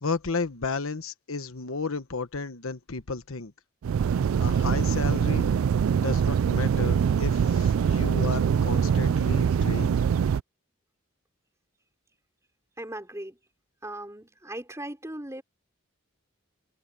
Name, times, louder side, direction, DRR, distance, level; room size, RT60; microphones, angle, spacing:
voice 1, 0.0-3.5 4.4-5.5 6.0-10.0, left 4 dB, 75° left, 1.2 m, -33 dB
sound 1, 3.8-10.4, right 7 dB, 75° right, 0.3 m, -23 dB
voice 2, 12.8-13.4 13.8-15.4, right 1 dB, 15° right, 4.3 m, -38 dB
head